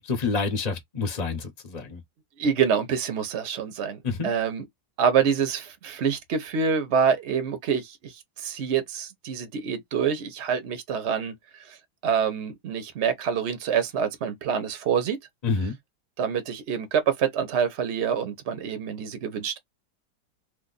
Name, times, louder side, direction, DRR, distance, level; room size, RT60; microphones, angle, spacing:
voice 1, 0.0-2.0 4.0-4.3 15.4-15.8, left 4 dB, 35° left, 0.7 m, -28 dB
voice 2, 2.4-4.6 5.0-11.3 11.7-11.8 12.0-15.2 16.2-19.6, right 7 dB, 50° right, 0.9 m, -26 dB
2.9 x 2.5 x 3.8 m
omnidirectional pair, 1.9 m